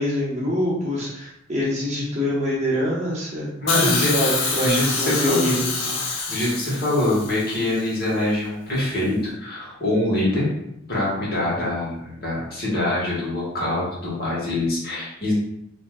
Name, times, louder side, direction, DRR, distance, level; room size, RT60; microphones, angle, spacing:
voice 1, 0.0-6.0, equal, 35° right, -6 dB, 0.9 m, -25 dB
voice 2, 3.6-4.1 4.6-5.7 6.3-10.5 10.9-15.3, left 1 dB, 50° left, -6 dB, 1.2 m, -24 dB
Hiss, 3.7-7.8 8.8-8.9, left 4 dB, 85° left, 0.6 m, -26 dB
3.5 x 2.7 x 2.3 m, 0.80 s
head